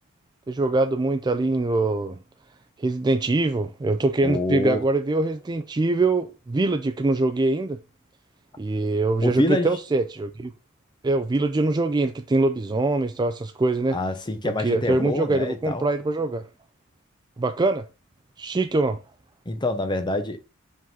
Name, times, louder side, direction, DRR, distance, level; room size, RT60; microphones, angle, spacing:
voice 1, 0.5-2.2 2.8-7.8 8.6-10.5 11.0-14.0 14.6-16.5 17.4-17.8 18.4-19.0, right 2 dB, 20° right, 0.3 m, -23 dB
voice 2, 4.2-4.8 9.2-9.7 13.9-15.9 19.5-20.4, left 1 dB, 20° left, 0.8 m, -26 dB
5.2 x 3.8 x 5.4 m
head